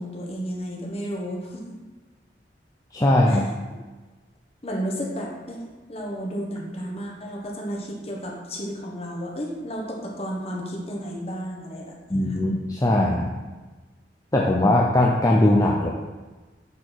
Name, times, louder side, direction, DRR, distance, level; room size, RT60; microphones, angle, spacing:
voice 1, 0.0-1.8 3.3-3.4 4.6-5.6 5.9-11.9, equal, 35° left, -1 dB, 1.3 m, -32 dB
voice 2, 2.9-3.5 12.1-13.4 14.3-15.9, left 1 dB, 20° left, -2 dB, 0.5 m, -20 dB
8.3 x 4.5 x 4.5 m, 1.3 s
head